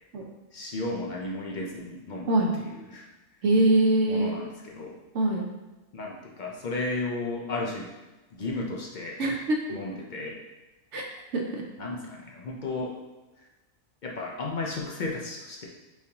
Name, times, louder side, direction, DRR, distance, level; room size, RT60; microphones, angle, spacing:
voice 1, 0.5-2.3 2.6-3.1 4.1-5.0 5.9-7.9 8.3-9.2 9.7-10.4 11.8-12.9 14.0-15.6, left 2 dB, 50° left, -2 dB, 0.5 m, -34 dB
voice 2, 3.4-4.3 5.1-5.4 9.2-9.6 10.9-11.1 11.3-11.6, right 1 dB, 65° right, 0 dB, 1.0 m, -23 dB
5.0 x 3.2 x 2.8 m, 1.1 s
omnidirectional pair, 1.4 m